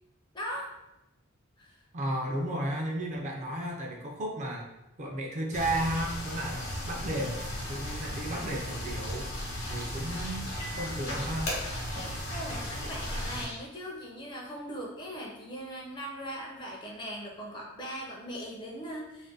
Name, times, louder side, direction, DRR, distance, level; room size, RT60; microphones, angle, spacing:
voice 1, 0.3-0.7 1.6-1.8 12.3-19.3, equal, 20° left, -2 dB, 0.5 m, -39 dB
voice 2, 1.9-4.7 5.0-7.4 7.7-9.3 9.7-10.5 10.8-11.6, right 1 dB, 35° right, 0 dB, 0.4 m, -33 dB
sound 1, 5.5-13.5, equal, 60° left, 0.9 m, -36 dB
Scratching (performance technique), 9.0-9.1 9.4-12.7 13.0-13.6, left 2 dB, 85° left, 0.9 m, -45 dB
2.4 x 2.1 x 3.7 m, 0.94 s
head